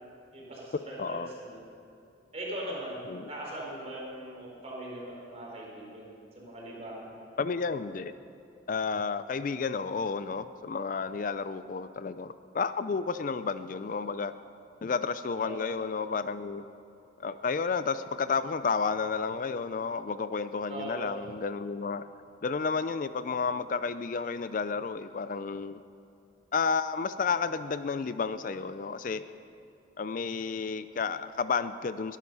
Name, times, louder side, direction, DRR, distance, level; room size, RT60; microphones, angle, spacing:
voice 1, 0.3-1.6 2.3-7.2 15.4-15.7 20.7-21.1, right 1 dB, 35° right, -4 dB, 4.6 m, -40 dB
voice 2, 7.4-8.1 8.7-14.3 14.8-16.6 17.2-22.0 22.4-25.8 26.5-29.2 30.0-32.2, left 5 dB, 45° left, 13 dB, 0.4 m, -31 dB
21.5 x 11.0 x 5.5 m, 2.7 s
head